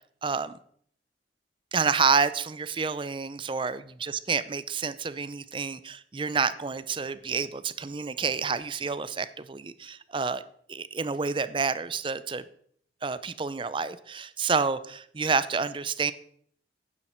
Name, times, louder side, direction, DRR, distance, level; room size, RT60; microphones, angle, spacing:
voice 1, 0.2-0.5 1.7-10.4 10.7-12.4 13.0-16.1, right 5 dB, 30° right, 15 dB, 0.5 m, -29 dB
10.5 x 10.0 x 4.4 m, 0.62 s
head